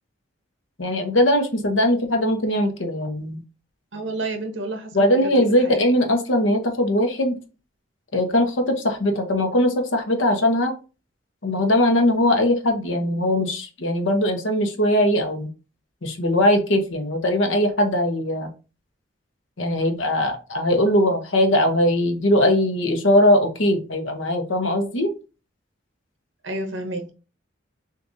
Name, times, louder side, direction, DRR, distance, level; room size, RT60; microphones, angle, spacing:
voice 1, 0.8-3.4 4.9-7.4 8.1-10.7 11.4-15.5 16.0-18.5 19.6-25.1, left 1 dB, 80° left, 5 dB, 1.0 m, -20 dB
voice 2, 3.9-5.3 5.6-5.8 26.4-27.1, right 2 dB, 70° right, 4 dB, 1.0 m, -30 dB
6.4 x 2.6 x 2.7 m, 0.33 s
head